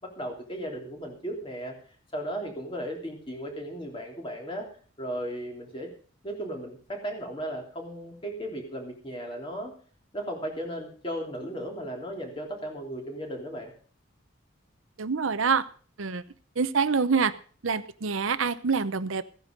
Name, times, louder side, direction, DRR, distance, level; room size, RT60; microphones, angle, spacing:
voice 1, 0.0-1.8 2.1-4.7 5.0-5.9 6.2-9.7 10.1-13.7, equal, 25° left, 1 dB, 3.2 m, -36 dB
voice 2, 15.0-15.6 16.0-16.2 16.6-17.3 17.6-19.2, right 5 dB, 85° right, 13 dB, 0.8 m, -26 dB
15.0 x 9.8 x 5.2 m, 0.43 s
head